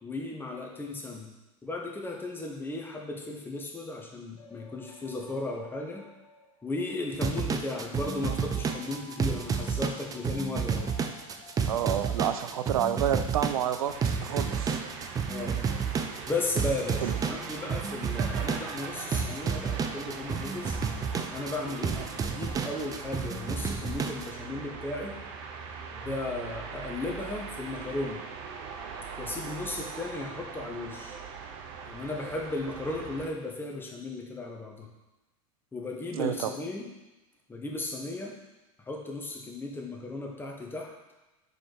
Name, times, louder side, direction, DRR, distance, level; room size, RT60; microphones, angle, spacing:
voice 1, 0.0-1.3 1.6-6.0 6.6-10.9 15.3-15.6 16.3-20.8 21.3-25.1 25.9-28.2 29.2-31.2 31.9-34.9 35.7-36.8 37.5-38.4 38.9-40.9, left 2 dB, 10° left, 0 dB, 1.2 m, -35 dB
sound 1, 4.4-12.8, left 2 dB, 60° left, 1.4 m, -54 dB
sound 2, 7.1-24.3, right 6 dB, 20° right, 0.5 m, -31 dB
voice 2, 11.7-14.8 17.0-17.2 36.1-36.5, right 10 dB, 85° right, 11 dB, 0.4 m, -29 dB
sound 3, 13.9-33.3, right 5 dB, 55° right, 0.9 m, -41 dB
4.9 x 4.3 x 4.7 m, 1.0 s
hypercardioid pair, 105°, 18 cm